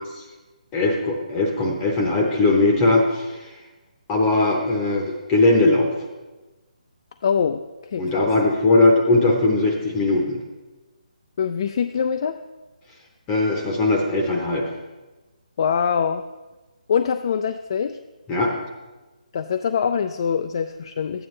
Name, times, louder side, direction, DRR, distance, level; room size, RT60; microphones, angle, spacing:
voice 1, 0.7-3.4 4.1-5.0 5.3-5.9 8.0-10.4 13.3-14.7 18.3-18.5, left 2 dB, 15° left, 1 dB, 0.8 m, -19 dB
voice 2, 7.2-8.3 11.4-12.4 15.6-16.2 16.9-18.0 19.3-21.3, left 7 dB, 40° left, 8 dB, 0.3 m, -24 dB
12.5 x 8.9 x 3.2 m, 1.2 s
hypercardioid pair, 165°, 4 cm